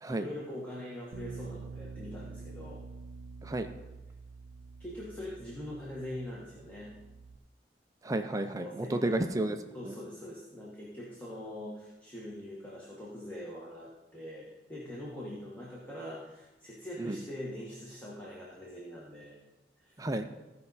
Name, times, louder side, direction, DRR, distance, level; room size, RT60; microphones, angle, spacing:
voice 1, 0.1-2.8 4.8-6.9 8.6-9.2 9.7-19.4 19.8-19.9, left 1 dB, 10° left, -5 dB, 1.4 m, -43 dB
Bass guitar, 1.1-7.4, right 4 dB, 80° right, 0.5 m, -47 dB
voice 2, 8.0-9.6 9.8-9.9 17.0-17.2 20.0-20.2, right 2 dB, 20° right, 7 dB, 0.4 m, -31 dB
15.5 x 5.5 x 4.0 m, 1.0 s
head